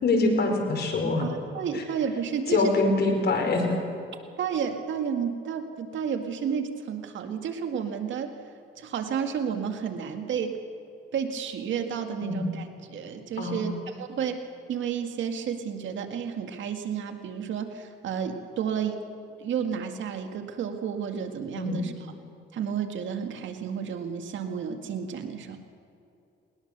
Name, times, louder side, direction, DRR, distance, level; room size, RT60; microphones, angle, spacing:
voice 1, 0.0-1.3 1.7-1.8 2.5-3.7 12.2-12.5 13.4-13.8 21.5-21.8, left 3 dB, 55° left, 3 dB, 4.9 m, -24 dB
voice 2, 1.2-2.7 4.4-8.3 8.8-10.6 11.1-14.4 14.7-19.0 19.4-21.9 22.5-25.6, right 7 dB, 70° right, 5 dB, 2.0 m, -31 dB
20.0 x 20.0 x 6.8 m, 2.7 s
cardioid pair, 90°, 20 cm